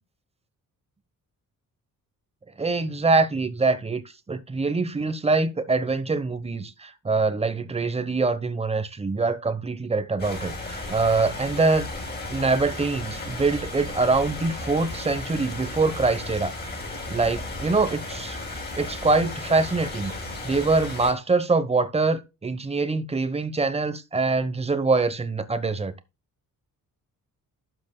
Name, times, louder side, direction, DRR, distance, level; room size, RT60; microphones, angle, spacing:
voice 1, 2.6-4.0 4.3-11.9 12.3-16.5 17.1-18.4 18.8-20.1 20.4-25.9, right 3 dB, 20° right, 1.0 m, -24 dB
sound 1, 10.2-21.1, left 2 dB, 30° left, 5.5 m, -35 dB
12.0 x 8.0 x 2.2 m
wide cardioid pair, 165°, 34 cm